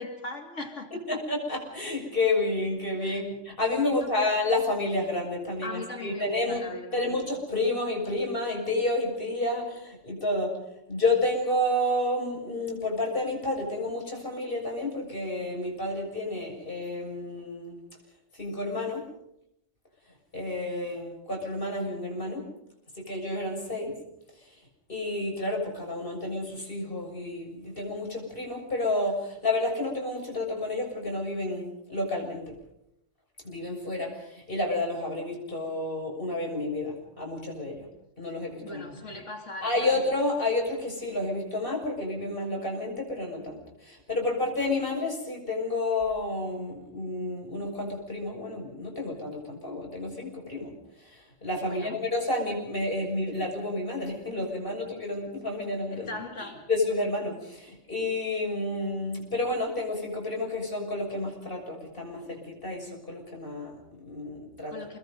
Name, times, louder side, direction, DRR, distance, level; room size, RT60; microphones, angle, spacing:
voice 1, 0.0-1.2 3.0-3.2 3.8-4.3 5.6-7.0 38.6-39.9 51.6-52.0 55.9-56.6 64.7-65.0, left 2 dB, 70° left, 4 dB, 3.0 m, -39 dB
voice 2, 1.1-6.6 6.9-10.5 10.9-17.8 18.3-19.0 20.3-22.4 23.0-23.9 24.9-32.5 33.4-37.9 38.2-38.8 39.6-50.7 51.0-56.1 56.4-64.7, left 2 dB, 45° left, 0 dB, 7.3 m, -30 dB
29.5 x 21.0 x 5.4 m, 0.80 s
omnidirectional pair, 1.3 m